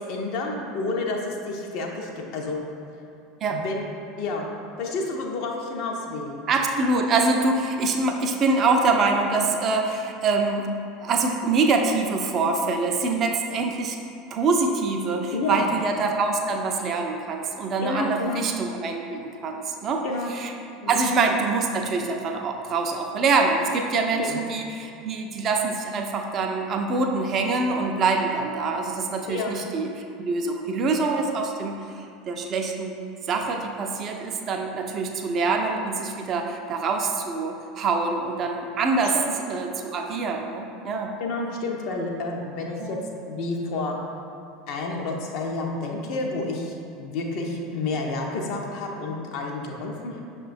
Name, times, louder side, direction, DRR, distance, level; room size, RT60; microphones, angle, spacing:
voice 1, 0.0-2.6 3.5-3.9 4.2-4.5 4.8-6.4 15.3-15.7 17.8-18.4 20.0-20.3 20.8-21.0 24.2-24.4 29.3-29.6 39.0-39.3 41.2-43.0 43.3-44.0 44.7-50.2, left 3 dB, 55° left, 0 dB, 0.4 m, -30 dB
voice 2, 6.5-10.7 11.0-14.0 14.3-20.0 20.3-20.5 20.9-29.9 30.2-31.8 32.3-33.0 33.3-39.2 39.5-41.1 42.8-43.0, right 3 dB, 40° right, 3 dB, 0.3 m, -25 dB
5.9 x 2.1 x 2.5 m, 2.5 s
figure-of-eight pair, 75°, 0 cm